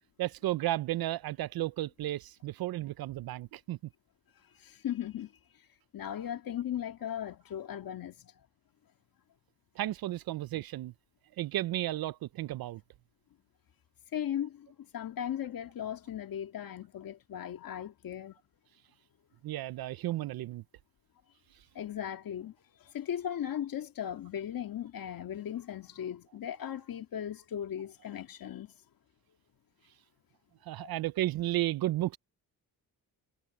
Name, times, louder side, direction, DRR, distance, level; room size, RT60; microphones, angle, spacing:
voice 1, 0.2-3.8 9.8-10.9 11.4-12.8 19.4-20.6 30.6-32.2, right 15 dB, 65° right, 0.5 m, -33 dB
voice 2, 4.5-5.3 5.9-8.3 14.1-18.4 21.7-22.5 22.8-28.7 30.8-30.9, left 10 dB, 60° left, 2.2 m, -37 dB
cardioid pair, 140°, 39 cm